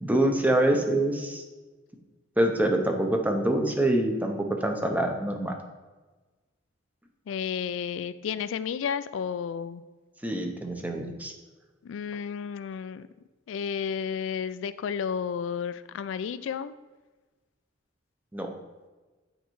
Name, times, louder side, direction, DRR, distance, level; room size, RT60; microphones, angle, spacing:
voice 1, 0.0-1.4 2.4-5.5 10.2-11.3 18.3-18.5, right 1 dB, 10° right, 3 dB, 0.7 m, -25 dB
voice 2, 7.3-9.8 11.8-13.1 13.5-16.7, left 7 dB, 85° left, 15 dB, 0.3 m, -32 dB
9.2 x 4.4 x 3.1 m, 1.3 s
head